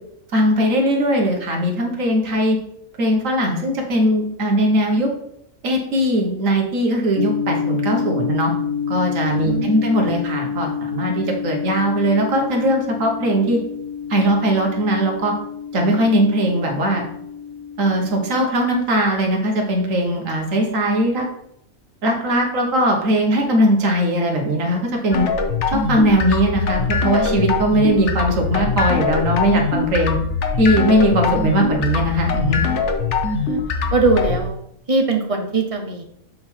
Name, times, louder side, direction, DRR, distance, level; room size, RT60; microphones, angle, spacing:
voice 1, 0.3-2.6 3.0-5.1 5.6-8.5 8.9-13.6 14.1-15.3 15.7-17.0 17.8-21.2 22.0-25.3 25.7-30.2 30.6-32.6, right 1 dB, 65° right, 1 dB, 1.7 m, -19 dB
sound 1, 7.2-18.5, left 7 dB, 90° left, 1.1 m, -28 dB
voice 2, 9.3-10.1 33.3-33.6 33.9-34.6 34.9-36.0, right 3 dB, 30° right, 3 dB, 0.7 m, -22 dB
sound 2, 25.1-34.4, left 4 dB, 60° left, 1.1 m, -22 dB
7.5 x 3.8 x 4.5 m, 0.74 s
omnidirectional pair, 1.5 m